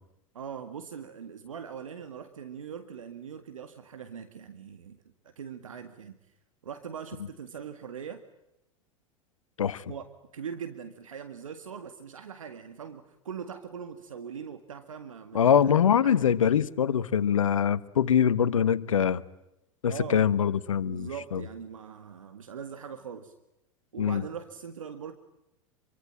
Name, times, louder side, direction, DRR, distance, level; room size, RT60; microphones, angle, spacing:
voice 1, 0.3-5.0 5.2-6.2 6.6-8.2 9.9-15.6 16.0-16.3 19.9-20.2 20.8-23.3 23.9-25.2, right 7 dB, 80° right, 2.0 m, -41 dB
voice 2, 15.3-19.2 19.8-21.4 24.0-24.2, left 8 dB, 80° left, 1.4 m, -23 dB
27.5 x 24.0 x 8.8 m
hypercardioid pair, 90°, 17 cm